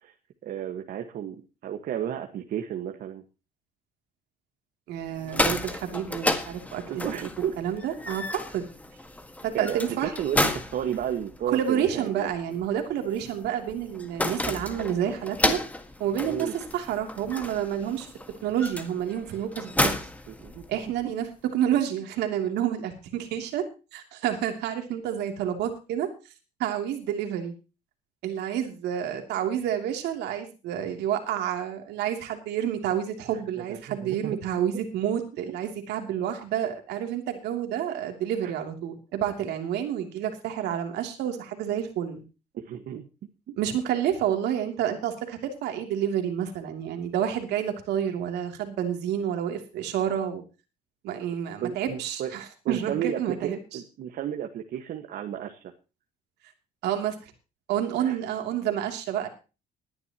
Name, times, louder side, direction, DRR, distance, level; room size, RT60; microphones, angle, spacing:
voice 1, 0.4-3.2 6.9-7.5 9.5-10.4 10.7-12.3 16.3-16.6 20.3-20.6 33.3-34.4 37.9-38.0 38.4-38.5 42.5-43.1 51.6-52.3 52.7-55.6 58.0-58.2, right 9 dB, 60° right, 5 dB, 1.6 m, -33 dB
voice 2, 4.9-7.0 7.6-8.7 9.4-10.1 11.5-15.6 16.0-18.1 18.4-19.9 20.7-21.2 21.5-23.6 23.9-26.1 26.6-27.5 28.2-42.2 43.6-50.4 51.0-53.6 56.8-57.2 57.7-59.3, right 10 dB, 80° right, 5 dB, 2.9 m, -29 dB
sound 1, 5.1-21.0, left 1 dB, 10° left, 1.7 m, -32 dB
20.0 x 11.0 x 3.0 m, 0.32 s
cardioid pair, 110°, 17 cm